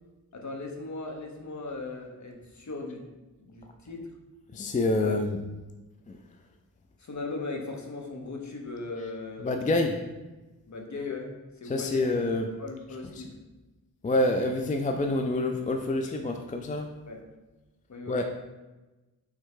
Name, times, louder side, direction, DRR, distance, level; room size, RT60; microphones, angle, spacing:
voice 1, 0.3-3.1 3.4-4.1 5.0-5.2 7.0-9.6 10.7-12.2 12.6-13.4 17.1-17.2 17.9-18.2, left 3 dB, 45° left, 2 dB, 0.9 m, -38 dB
voice 2, 4.5-5.4 6.1-6.2 9.4-10.0 11.7-12.5 14.0-16.9 18.1-18.2, left 2 dB, 20° left, 4 dB, 0.3 m, -27 dB
3.5 x 3.2 x 4.7 m, 1.1 s
wide cardioid pair, 70°, 39 cm